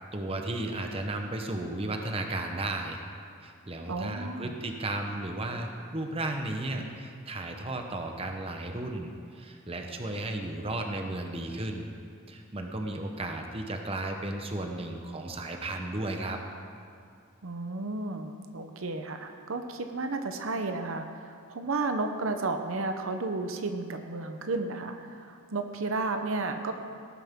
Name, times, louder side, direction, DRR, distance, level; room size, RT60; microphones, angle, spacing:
voice 1, 0.1-3.0 3.4-11.9 12.3-16.4, right 2 dB, 25° right, 3 dB, 0.9 m, -34 dB
voice 2, 3.9-4.6 17.4-26.7, right 3 dB, 75° right, 6 dB, 0.8 m, -33 dB
18.0 x 9.7 x 3.7 m, 2.5 s
head